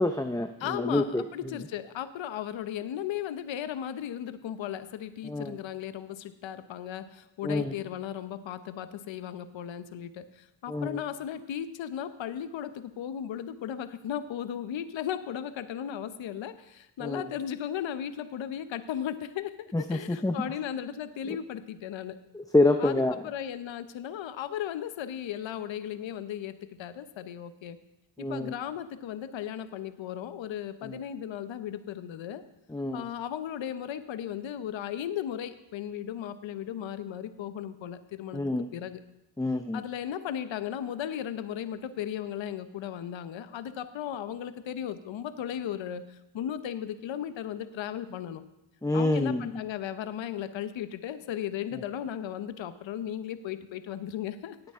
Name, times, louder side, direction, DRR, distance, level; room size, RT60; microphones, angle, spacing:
voice 1, 0.0-1.2 5.2-5.5 7.4-7.7 10.7-11.0 17.0-17.2 19.7-20.3 22.3-23.1 28.2-28.5 30.9-31.0 32.7-33.0 38.3-38.7 39.4-39.8 48.8-49.4, left 2 dB, 5° left, 6 dB, 0.7 m, -27 dB
voice 2, 0.6-22.2 22.8-27.8 28.2-32.4 32.9-38.4 38.7-39.0 39.7-48.4 48.9-54.6, left 10 dB, 65° left, 12 dB, 0.9 m, -36 dB
17.5 x 8.8 x 3.7 m, 0.89 s
supercardioid pair, 60°, 49 cm